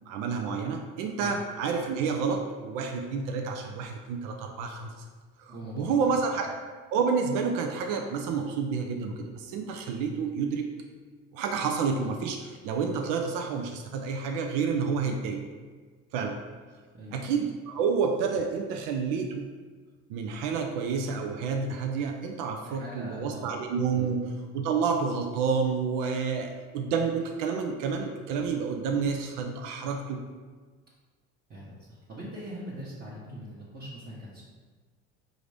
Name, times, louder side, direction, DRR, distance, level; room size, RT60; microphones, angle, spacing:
voice 1, 0.1-4.9 5.4-6.6 6.9-10.7 11.3-15.4 16.1-16.4 17.1-19.5 20.1-24.2 24.5-30.2, right 5 dB, 70° right, 4 dB, 0.5 m, -29 dB
voice 2, 5.5-6.2 16.9-17.2 17.7-17.8 22.6-23.5 23.9-24.1 31.5-34.4, equal, 30° right, -8 dB, 1.0 m, -42 dB
4.9 x 2.6 x 3.3 m, 1.5 s
supercardioid pair, 85°, 34 cm